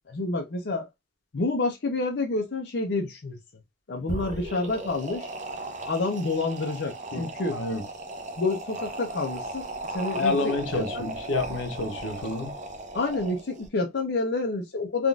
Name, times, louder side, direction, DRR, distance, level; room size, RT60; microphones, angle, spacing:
voice 1, 0.1-0.9 1.3-3.4 3.9-5.3 5.9-7.6 8.4-9.7 9.9-11.1 12.9-15.1, left 3 dB, 60° left, 0.6 m, -28 dB
sound 1, 4.0-13.7, right 2 dB, 40° right, 0.6 m, -37 dB
voice 2, 7.1-7.8 10.1-12.5, left 3 dB, 85° left, 0.8 m, -29 dB
3.5 x 2.4 x 2.3 m
head